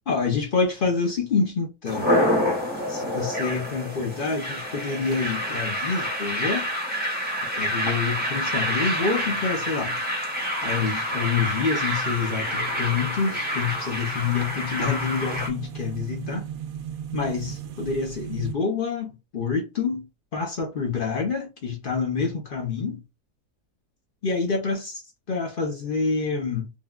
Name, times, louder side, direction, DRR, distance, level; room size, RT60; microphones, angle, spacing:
voice 1, 0.1-2.2 2.9-6.7 7.6-10.0 10.6-16.5 17.1-20.1 20.3-23.0 24.2-25.0 25.3-26.7, left 5 dB, 45° left, 0.8 m, -27 dB
sound 1, 1.8-15.5, equal, 10° right, 0.8 m, -27 dB
sound 2, 10.2-18.6, right 8 dB, 70° right, 0.9 m, -39 dB
3.5 x 2.3 x 2.3 m
omnidirectional pair, 1.6 m